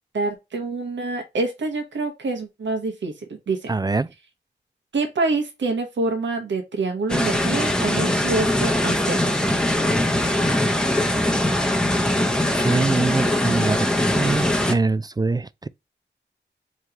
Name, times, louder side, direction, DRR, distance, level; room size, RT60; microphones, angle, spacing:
voice 1, 0.1-3.1 3.5-3.7 4.9-9.2, right 3 dB, 75° right, 1.1 m, -26 dB
voice 2, 3.7-4.1 12.1-12.2 12.5-15.7, right 3 dB, 20° right, 0.3 m, -24 dB
sound 1, 7.1-14.7, left 1 dB, 5° left, 0.8 m, -21 dB
3.6 x 3.2 x 2.8 m
cardioid pair, 55°, 19 cm